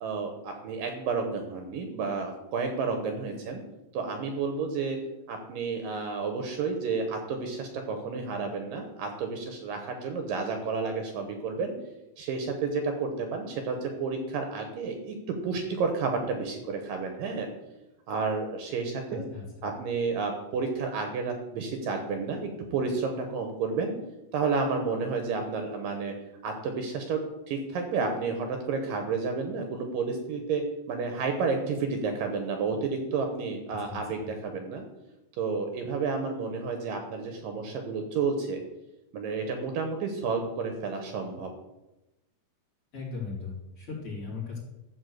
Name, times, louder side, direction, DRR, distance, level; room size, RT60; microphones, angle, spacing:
voice 1, 0.0-3.6 3.9-5.0 5.3-11.7 12.2-17.5 18.1-19.3 19.6-23.9 24.3-26.1 26.4-30.6 30.9-34.8 35.4-38.6 39.1-41.5, right 4 dB, 70° right, 5 dB, 2.5 m, -31 dB
voice 2, 19.1-19.4 33.9-34.3 42.9-44.6, left 4 dB, 35° left, -6 dB, 4.4 m, -38 dB
13.5 x 4.5 x 7.9 m, 0.97 s
omnidirectional pair, 4.5 m